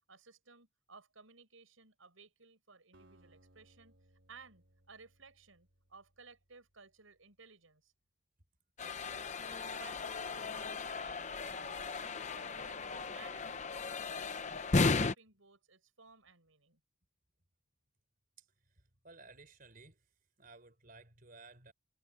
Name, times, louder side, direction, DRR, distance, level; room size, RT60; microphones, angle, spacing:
voice 1, 0.1-4.0 4.3-7.9 9.5-16.8, right 4 dB, 85° right, 6.3 m, -59 dB
Acoustic guitar, 2.9-7.0, right 1 dB, 60° right, 6.3 m, -67 dB
sound 1, 8.8-15.1, left 3 dB, 35° left, 0.8 m, -35 dB
voice 2, 18.4-20.1 20.4-21.7, right 3 dB, 45° right, 4.0 m, -57 dB
head